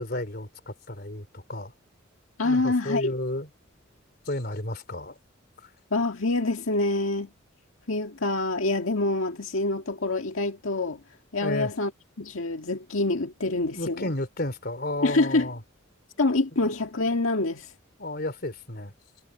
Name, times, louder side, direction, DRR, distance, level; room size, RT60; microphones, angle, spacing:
voice 1, 0.0-1.7 2.4-3.5 4.3-5.2 11.4-11.7 13.7-15.6 18.0-18.9, left 1 dB, 50° left, 3.6 m, -32 dB
voice 2, 2.4-3.1 5.9-7.3 7.9-11.0 11.3-11.9 12.2-14.1 15.0-15.5 16.2-17.7, left 2 dB, 80° left, 1.8 m, -26 dB
head